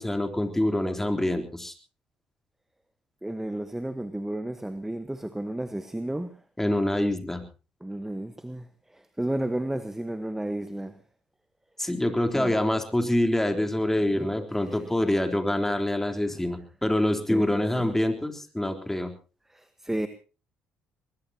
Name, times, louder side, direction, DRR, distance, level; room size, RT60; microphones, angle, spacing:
voice 1, 0.0-1.7 6.6-7.4 11.8-19.1, left 1 dB, 10° left, 3.6 m, -26 dB
voice 2, 3.2-6.3 7.8-10.9 12.3-12.6 14.1-14.8 16.3-16.4 17.3-17.7 19.5-20.1, right 1 dB, 10° right, 1.3 m, -33 dB
21.5 x 21.0 x 2.9 m
hypercardioid pair, 55°, 4 cm